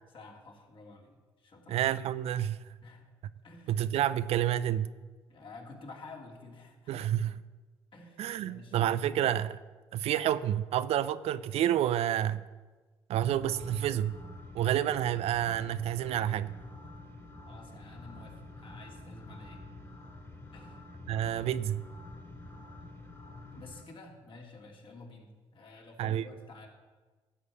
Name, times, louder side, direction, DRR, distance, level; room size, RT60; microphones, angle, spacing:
voice 1, 0.1-1.9 2.8-3.1 3.4-3.9 5.3-7.2 7.9-9.1 17.5-19.6 20.5-20.8 23.5-26.7, left 3 dB, 50° left, 2.8 m, -51 dB
voice 2, 1.7-2.6 3.7-4.9 6.9-7.3 8.2-9.6 9.9-12.4 13.1-14.2 14.5-16.5 21.1-21.8 26.0-26.2, right 11 dB, 65° right, 0.5 m, -29 dB
sound 1, 13.1-23.8, left 2 dB, 25° left, 2.3 m, -48 dB
12.5 x 4.7 x 8.5 m
supercardioid pair, 60°, 11 cm